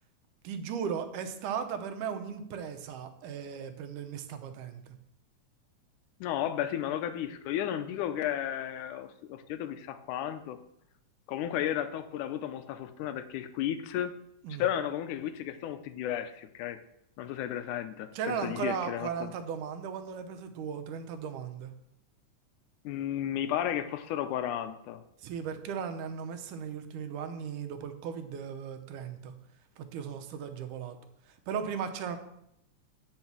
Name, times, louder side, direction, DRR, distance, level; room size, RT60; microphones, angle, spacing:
voice 1, 0.4-5.0 14.4-14.6 18.1-21.7 25.2-29.3 29.8-31.0 31.5-32.2, right 7 dB, 85° right, 7 dB, 2.4 m, -36 dB
voice 2, 6.2-10.6 11.3-14.1 14.6-16.8 17.2-19.3 22.8-25.0, left 10 dB, 85° left, 10 dB, 2.1 m, -33 dB
8.9 x 5.6 x 6.0 m, 0.78 s
omnidirectional pair, 3.6 m